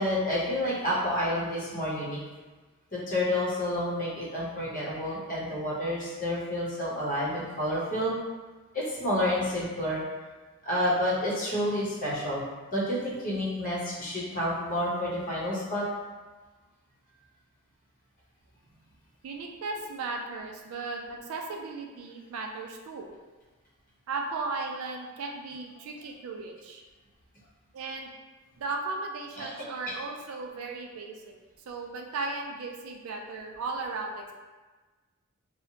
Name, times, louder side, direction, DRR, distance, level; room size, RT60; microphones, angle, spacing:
voice 1, 0.0-2.2 2.9-8.1 8.7-10.0 10.6-12.4 12.7-15.8 29.4-29.5 29.9-30.0, left 1 dB, 40° left, -7 dB, 0.8 m, -29 dB
voice 2, 19.2-23.1 24.1-26.8 27.7-28.1 28.6-31.4 31.7-34.3, right 3 dB, 65° right, 2 dB, 0.3 m, -36 dB
2.8 x 2.0 x 2.7 m, 1.3 s
head